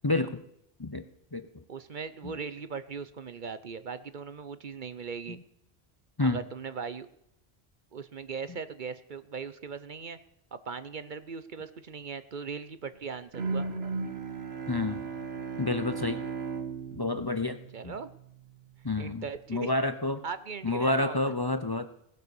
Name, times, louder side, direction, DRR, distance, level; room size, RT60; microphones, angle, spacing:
voice 1, 0.0-0.4 0.8-1.0 1.3-1.5 2.2-2.3 5.3-5.4 6.2-6.4 14.7-15.1 15.6-16.2 16.9-17.6 17.8-17.9 18.8-19.2 19.5-20.2 20.6-21.9, left 2 dB, 25° left, 10 dB, 0.7 m, -29 dB
voice 2, 1.7-5.4 6.2-7.1 7.9-10.2 10.5-13.7 17.7-18.1 19.0-19.7 20.2-21.2, right 5 dB, 55° right, 13 dB, 0.9 m, -39 dB
Bowed string instrument, 13.3-18.4, right 4 dB, 85° right, 1.7 m, -36 dB
18.0 x 8.0 x 7.0 m, 0.77 s
omnidirectional pair, 1.0 m